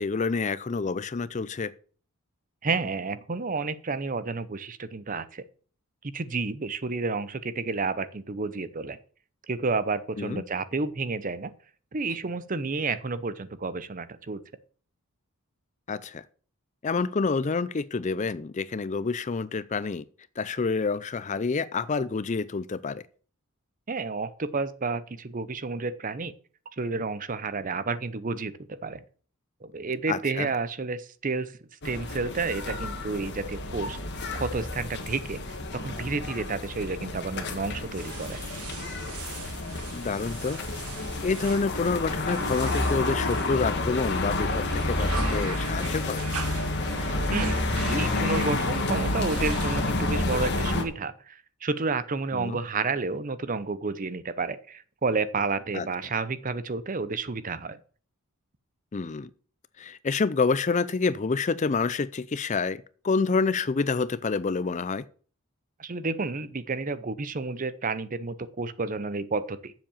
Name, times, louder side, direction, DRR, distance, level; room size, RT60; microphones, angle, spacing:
voice 1, 0.0-1.7 10.2-10.4 15.9-16.2 16.8-20.0 20.4-23.0 30.1-30.5 39.9-40.6 41.2-46.3 52.3-52.6 55.7-55.9 58.9-59.3 59.8-65.0, left 4 dB, 30° left, 0.4 m, -28 dB
voice 2, 2.6-5.4 6.1-9.0 9.5-11.5 11.9-14.4 23.9-26.3 26.8-29.0 29.6-31.6 31.8-34.0 34.3-38.4 47.3-57.8 65.8-69.7, right 4 dB, 35° right, 0.6 m, -31 dB
sound 1, 31.8-50.8, left 2 dB, 50° left, 1.6 m, -30 dB
sound 2, 38.0-44.1 44.5-50.1, right 6 dB, 85° right, 1.5 m, -42 dB
7.5 x 7.4 x 7.1 m
head